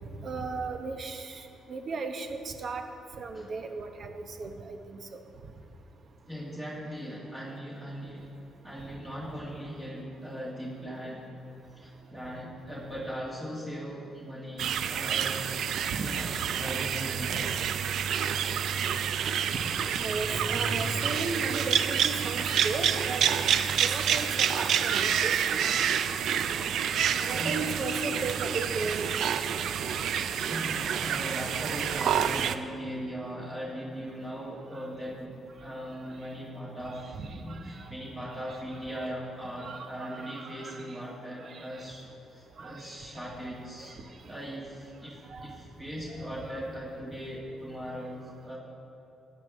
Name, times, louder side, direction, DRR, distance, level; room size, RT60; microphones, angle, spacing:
voice 1, 0.2-1.4 1.7-2.8 3.2-5.0 15.9-16.1 19.8-23.2 23.8-25.7 27.3-29.1 37.1-37.9 38.9-39.1 39.6-40.8 41.4-41.9 42.6-42.8 45.3-45.6 46.5-46.7, right 3 dB, 50° right, 6 dB, 1.0 m, -36 dB
voice 2, 6.3-8.3 8.6-11.3 11.7-15.5 16.0-17.7 26.7-28.1 30.4-48.6, equal, 15° right, -5 dB, 1.9 m, -39 dB
sound 1, 14.6-32.6, right 8 dB, 70° right, 0.4 m, -28 dB
14.0 x 9.1 x 3.7 m, 2.8 s
cardioid pair, 90°, 0 cm